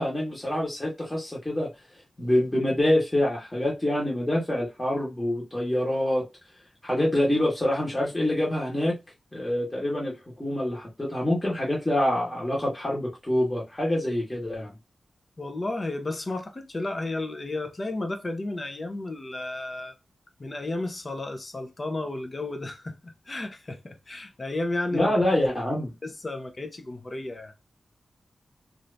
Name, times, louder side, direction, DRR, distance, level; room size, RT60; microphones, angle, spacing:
voice 1, 0.0-1.7 2.2-6.3 6.8-9.0 9.3-14.7 24.9-25.9, left 1 dB, 15° left, 1.2 m, -26 dB
voice 2, 15.4-19.9 20.4-25.1 26.0-27.5, left 2 dB, 35° left, 0.7 m, -33 dB
2.7 x 2.5 x 3.3 m
wide cardioid pair, 105°, 0 cm